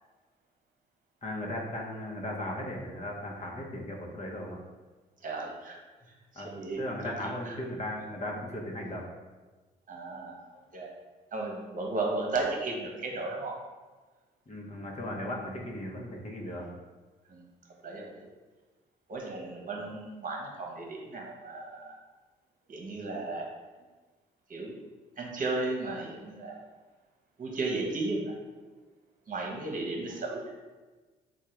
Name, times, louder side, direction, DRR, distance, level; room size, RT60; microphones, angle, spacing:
voice 1, 1.2-4.6 6.3-6.5 6.8-9.0 14.5-16.7, left 1 dB, 35° left, -1 dB, 1.0 m, -37 dB
voice 2, 5.2-5.8 6.3-6.8 7.2-7.6 9.9-10.9 11.3-13.6 17.3-17.5 17.8-18.3 19.1-22.0 22.7-23.5 24.5-24.8 25.2-26.6 27.4-28.3 29.3-30.4, right 3 dB, 45° right, 0 dB, 1.1 m, -35 dB
3.6 x 2.4 x 4.4 m, 1.3 s
supercardioid pair, 55°, 19 cm